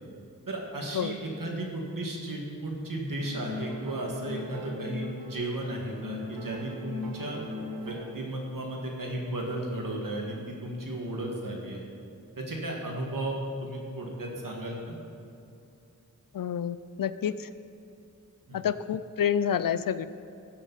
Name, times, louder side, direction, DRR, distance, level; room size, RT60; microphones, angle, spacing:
voice 1, 0.5-7.4 7.8-11.8 12.4-14.9 18.5-18.6, right 1 dB, 70° right, -1 dB, 2.0 m, -34 dB
sound 1, 3.2-5.5 5.9-8.3, left 2 dB, 85° right, 1.4 m, -38 dB
voice 2, 16.3-17.5 18.5-20.1, left 8 dB, 75° left, 14 dB, 0.5 m, -28 dB
14.0 x 9.0 x 4.1 m, 2.6 s
wide cardioid pair, 65°, 34 cm